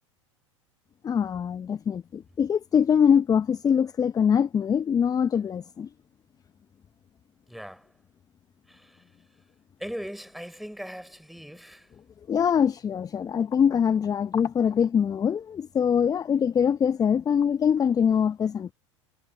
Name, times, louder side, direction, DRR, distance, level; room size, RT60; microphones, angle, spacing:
voice 1, 1.0-5.9 12.3-18.7, left 7 dB, 25° left, 1.0 m, -23 dB
voice 2, 7.5-7.9 8.7-9.0 9.8-11.9, equal, ahead, 4.5 m, -39 dB
figure-of-eight pair, 85°, 16 cm